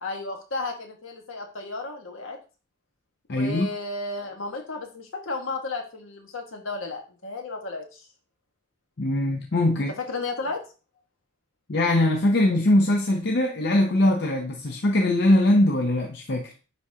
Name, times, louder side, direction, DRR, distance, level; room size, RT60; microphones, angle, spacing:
voice 1, 0.0-2.4 3.3-8.1 10.0-10.6, left 3 dB, 65° left, 1.4 m, -33 dB
voice 2, 3.3-3.7 9.0-9.9 11.7-16.5, left 1 dB, 50° left, 0.6 m, -21 dB
9.7 x 3.6 x 2.8 m
head